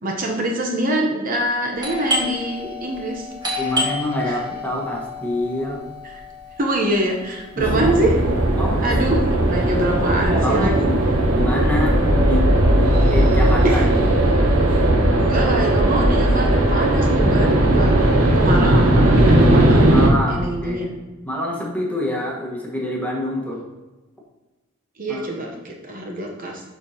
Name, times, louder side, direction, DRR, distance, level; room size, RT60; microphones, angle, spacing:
voice 1, 0.0-3.3 4.2-4.4 6.0-6.2 6.6-8.2 8.8-10.9 13.5-13.9 15.1-18.0 18.3-19.9 20.3-20.9 25.0-26.6, right 1 dB, 40° right, 0 dB, 0.9 m, -24 dB
Doorbell, 1.8-11.2 11.4-11.5 12.2-12.5 12.8-14.2, left 2 dB, 20° right, 1.3 m, -31 dB
voice 2, 3.6-5.8 7.6-8.0 8.6-9.0 10.3-11.0 11.3-12.5 13.1-13.9 19.9-20.9 21.2-23.6 25.1-25.3, left 1 dB, 5° left, -3 dB, 1.3 m, -26 dB
sound 1, 7.6-20.1, right 1 dB, 85° right, 1.2 m, -17 dB
12.0 x 4.6 x 2.9 m, 1.2 s
head